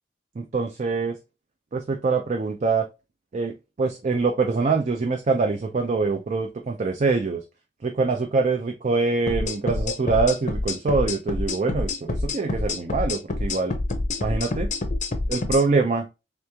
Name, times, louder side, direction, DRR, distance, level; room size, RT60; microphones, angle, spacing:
voice 1, 0.4-1.2 1.7-2.9 3.3-7.4 7.8-13.8 14.2-14.7 15.3-16.1, right 4 dB, 40° right, 0.4 m, -24 dB
sound 1, 9.3-15.6, left 2 dB, 40° left, 0.6 m, -27 dB
3.3 x 3.0 x 3.4 m
head